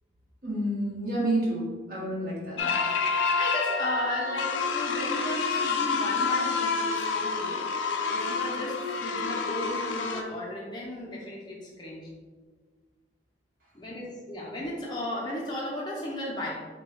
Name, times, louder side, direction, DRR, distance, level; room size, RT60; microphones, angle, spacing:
voice 1, 0.4-2.6, right 1 dB, 50° right, -6 dB, 1.4 m, -29 dB
sound 1, 2.6-10.2, left 4 dB, 85° left, 0.4 m, -28 dB
voice 2, 2.8-7.6 8.1-12.1 13.7-16.6, left 1 dB, 25° left, -3 dB, 0.5 m, -35 dB
6.1 x 2.2 x 3.1 m, 1.5 s
head